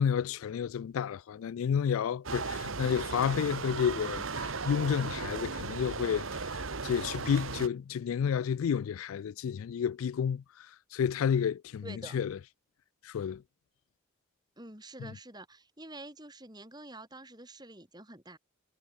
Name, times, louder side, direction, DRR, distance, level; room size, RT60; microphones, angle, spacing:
voice 1, 0.0-12.4 13.0-13.4 15.0-15.1, left 7 dB, 85° left, 0.3 m, -31 dB
sound 1, 2.2-7.7, right 4 dB, 75° right, 1.5 m, -36 dB
voice 2, 11.8-12.2 14.6-18.4, right 2 dB, 20° right, 7.4 m, -47 dB
head